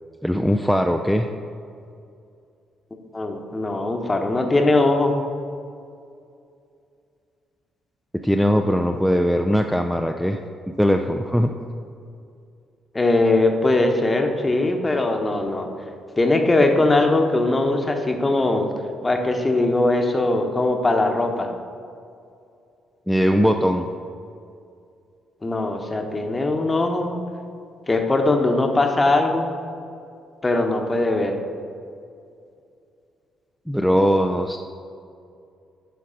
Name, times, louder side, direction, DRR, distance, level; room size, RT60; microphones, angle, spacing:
voice 1, 0.2-1.3 8.2-10.4 10.7-11.5 23.1-23.9 33.7-34.6, equal, ahead, 3 dB, 0.4 m, -20 dB
voice 2, 3.1-5.1 12.9-15.7 16.2-18.7 19.0-21.5 25.4-27.1 27.9-29.5 30.4-31.4, left 2 dB, 25° left, 4 dB, 1.0 m, -20 dB
9.9 x 5.2 x 3.9 m, 2.4 s
figure-of-eight pair, 40°, 0 cm